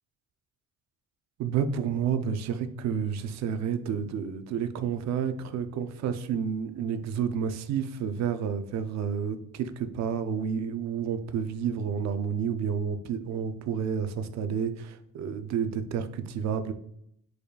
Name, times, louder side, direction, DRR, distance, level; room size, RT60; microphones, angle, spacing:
voice 1, 1.4-16.7, right 7 dB, 55° right, 10 dB, 0.4 m, -30 dB
4.9 x 4.6 x 2.2 m, 0.72 s
cardioid pair, 165°, 34 cm